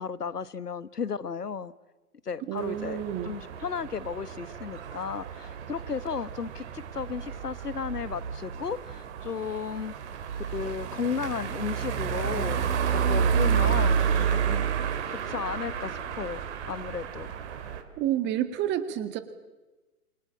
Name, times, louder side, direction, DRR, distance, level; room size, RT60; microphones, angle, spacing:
voice 1, 0.0-1.7 2.2-9.9 10.4-12.6 12.9-14.7 15.1-17.3, left 6 dB, 85° left, 17 dB, 1.2 m, -34 dB
voice 2, 2.5-3.3 18.0-19.2, right 11 dB, 25° right, 10 dB, 2.0 m, -29 dB
sound 1, 2.6-17.8, right 7 dB, 45° right, 3.1 m, -30 dB
27.5 x 23.0 x 9.0 m, 1.1 s
figure-of-eight pair, 125°, 46 cm